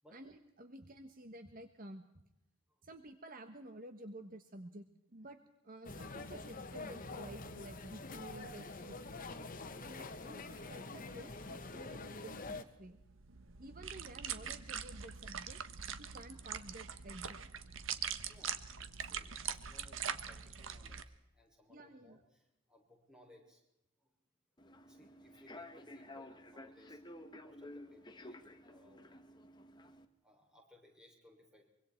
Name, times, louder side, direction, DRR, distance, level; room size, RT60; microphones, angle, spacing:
voice 1, 0.1-2.2 2.8-4.9 5.1-5.4 5.6-9.0 9.8-13.0 13.6-15.6 16.0-17.5 21.7-22.2, right 1 dB, 45° right, 8 dB, 1.3 m, -52 dB
sound 1, 5.8-12.6, left 3 dB, 45° left, 1.5 m, -46 dB
sound 2, 12.8-21.0, right 8 dB, 75° right, 1.4 m, -43 dB
voice 2, 17.9-18.6 19.0-23.6 24.0-24.1 24.9-29.2 30.2-31.7, left 1 dB, 5° right, -1 dB, 6.4 m, -64 dB
Human voice / Subway metro underground, 24.6-30.0, left 1 dB, 20° left, 1.5 m, -53 dB
24.5 x 24.5 x 4.5 m, 0.88 s
head